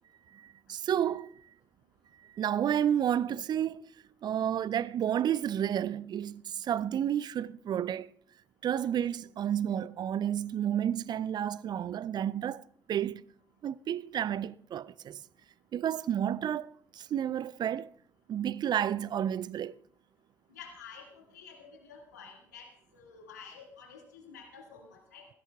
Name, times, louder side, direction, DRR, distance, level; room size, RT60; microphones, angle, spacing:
voice 1, 0.3-1.3 2.3-3.8 4.2-8.1 8.6-12.6 12.9-13.2 13.6-15.2 15.7-17.9 18.3-19.7, right 10 dB, 50° right, 0.5 m, -31 dB
voice 2, 20.5-25.3, left 6 dB, 85° left, 2.0 m, -50 dB
26.0 x 16.0 x 2.3 m
figure-of-eight pair, 40°, 9 cm